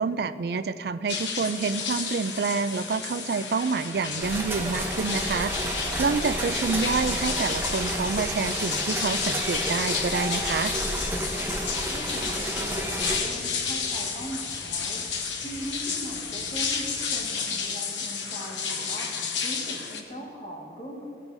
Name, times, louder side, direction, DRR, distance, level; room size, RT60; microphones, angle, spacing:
voice 1, 0.0-5.7 6.0-10.7, right 4 dB, 60° right, 12 dB, 0.4 m, -28 dB
sound 1, 1.1-20.0, left 5 dB, 90° left, 1.1 m, -31 dB
sound 2, 3.9-17.1, equal, 55° left, 2.5 m, -49 dB
sound 3, 4.2-13.2, right 1 dB, 15° right, 0.9 m, -31 dB
voice 2, 11.0-15.0 15.4-19.1 19.4-21.1, equal, 35° left, -2 dB, 1.7 m, -40 dB
16.5 x 11.5 x 2.7 m, 3.0 s
head